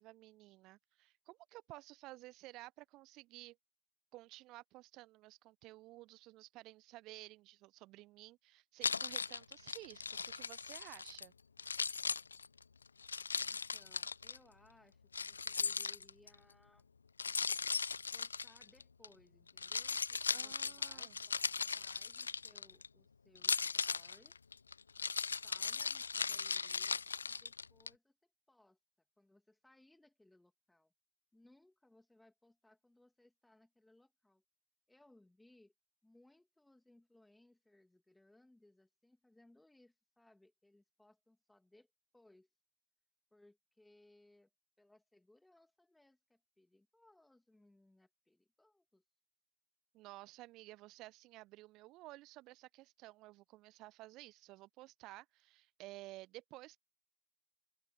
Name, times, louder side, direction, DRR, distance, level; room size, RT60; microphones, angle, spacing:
voice 1, 0.0-3.6 4.1-11.3 20.3-21.2 49.9-56.8, right 19 dB, 40° right, 0.7 m, -54 dB
Keys jangling, 8.8-11.3 11.6-14.4 15.1-16.3 17.2-19.1 19.5-22.9 23.4-27.9, left 5 dB, 75° left, 0.4 m, -38 dB
voice 2, 13.3-16.9 18.1-24.4 25.4-28.2 28.5-28.8 29.2-30.9 31.3-34.4 34.9-35.7 36.0-41.9 42.1-42.5 43.3-44.5 44.8-49.0, left 1 dB, 5° left, 2.6 m, -67 dB
open air
figure-of-eight pair, 90°, 0 cm